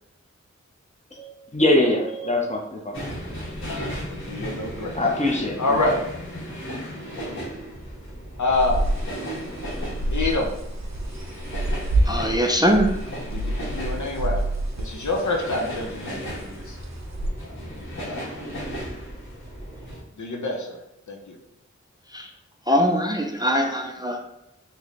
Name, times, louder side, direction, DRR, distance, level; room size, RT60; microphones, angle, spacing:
voice 1, 1.1-2.9 3.6-3.7 4.7-5.8, left 1 dB, 25° left, 0 dB, 0.7 m, -23 dB
sound 1, 2.9-20.0, equal, 45° left, 1.4 m, -35 dB
voice 2, 3.6-5.0 5.6-6.0 8.4-8.9 10.1-10.5 13.3-14.5 14.8-16.8 17.4-17.6 18.1-18.4 20.2-20.8 21.1-21.4, left 2 dB, 80° left, 1 dB, 0.7 m, -27 dB
sound 2, 8.5-17.3, right 1 dB, 65° right, 0.6 m, -28 dB
voice 3, 12.1-12.9 22.1-22.3 22.7-24.2, equal, 15° right, 2 dB, 0.4 m, -22 dB
3.2 x 2.2 x 3.8 m, 0.89 s
wide cardioid pair, 40°, 29 cm